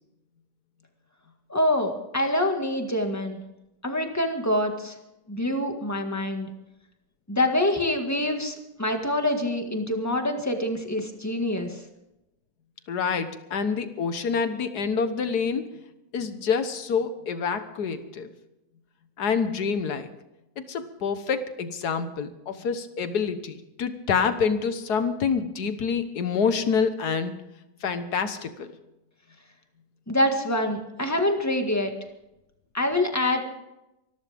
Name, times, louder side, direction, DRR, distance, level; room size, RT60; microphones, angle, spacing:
voice 1, 1.5-3.4 3.8-4.9 5.3-6.5 7.3-11.8 30.1-31.9 32.7-33.4, left 1 dB, 10° left, 4 dB, 1.7 m, -25 dB
voice 2, 12.9-15.7 16.1-18.3 19.2-20.1 20.6-27.3 27.8-28.7, left 6 dB, 65° left, 10 dB, 1.7 m, -27 dB
24.5 x 13.5 x 3.6 m, 0.92 s
omnidirectional pair, 1.9 m